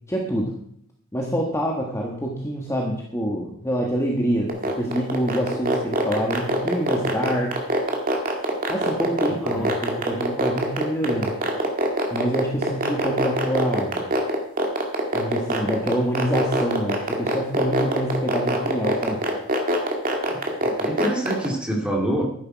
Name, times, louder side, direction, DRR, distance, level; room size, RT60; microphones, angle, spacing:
voice 1, 0.1-0.5 1.1-7.5 8.7-11.3 12.1-14.0 15.1-19.2, equal, 15° left, -1 dB, 1.5 m, -26 dB
sound 1, 4.5-21.5, right 1 dB, 40° right, 2.3 m, -22 dB
voice 2, 9.3-9.7 20.3-22.2, right 1 dB, 5° right, -1 dB, 2.7 m, -27 dB
12.5 x 10.5 x 4.7 m, 0.70 s
head